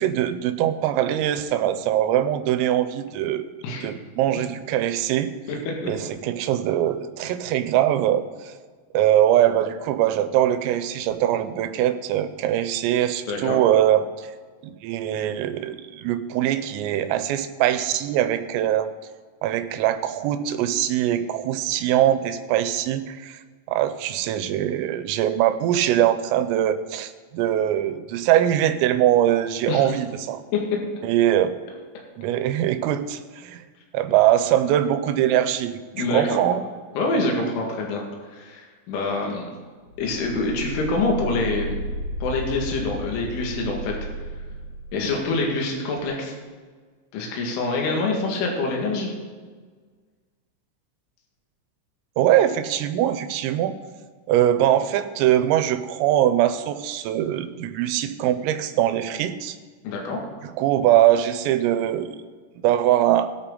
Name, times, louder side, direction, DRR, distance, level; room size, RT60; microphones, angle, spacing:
voice 1, 0.0-3.5 3.8-5.3 5.8-8.5 8.9-14.3 14.6-18.9 19.4-23.4 23.7-30.4 31.0-31.5 32.2-33.6 33.9-36.6 52.2-53.8 54.3-59.6 60.6-62.2 62.6-63.3, right 12 dB, 90° right, 10 dB, 3.4 m, -22 dB
voice 2, 13.3-13.6 29.7-29.9 30.5-30.8 35.9-36.4 37.0-38.0 38.3-39.4 40.0-41.7 42.2-43.9 44.9-46.4 47.1-49.1 59.8-60.2, left 3 dB, 70° left, 0 dB, 4.3 m, -25 dB
sound 1, 39.9-45.4 45.9-46.0, equal, 55° left, 3.6 m, -33 dB
21.0 x 8.9 x 3.9 m, 1.5 s
omnidirectional pair, 5.9 m